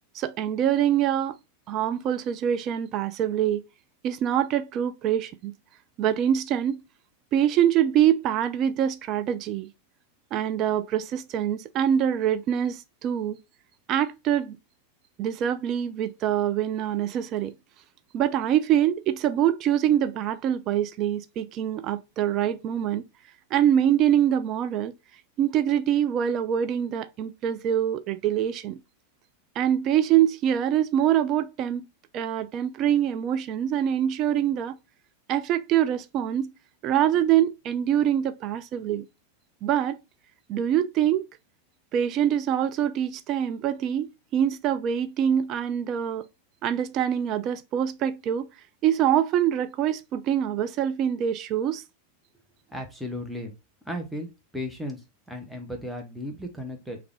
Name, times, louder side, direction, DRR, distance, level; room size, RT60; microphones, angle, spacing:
voice 1, 0.1-1.4 1.7-3.6 4.0-5.5 6.0-6.8 7.3-9.7 10.3-13.4 13.9-14.6 15.2-17.5 18.1-23.0 23.5-24.9 25.4-28.8 29.6-31.8 32.1-34.8 35.3-36.5 36.8-39.0 39.6-40.0 40.5-41.3 41.9-46.2 46.6-48.5 48.8-51.8, right 10 dB, 35° right, 0.3 m, -24 dB
voice 2, 52.7-53.5 53.9-54.3 54.5-55.0 55.3-57.0, left 1 dB, ahead, 0.7 m, -35 dB
3.3 x 2.3 x 3.5 m
figure-of-eight pair, 90°, 0 cm